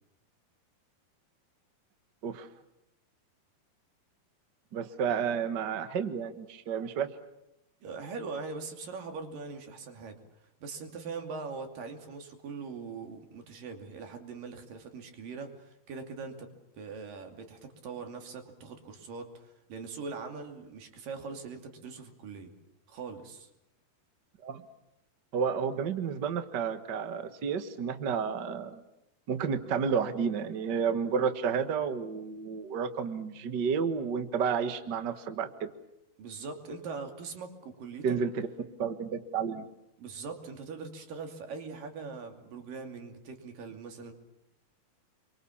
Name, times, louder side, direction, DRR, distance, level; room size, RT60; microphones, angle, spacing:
voice 1, 4.7-7.1 24.4-24.6 25.3-28.8 29.3-35.7 38.0-38.3 38.8-39.6, right 6 dB, 85° right, 9 dB, 0.9 m, -31 dB
voice 2, 7.8-10.2 10.6-16.5 16.7-22.5 22.9-23.5 36.2-38.2 40.0-44.1, right 4 dB, 60° right, 5 dB, 4.2 m, -41 dB
29.5 x 23.5 x 7.2 m, 0.87 s
omnidirectional pair, 4.6 m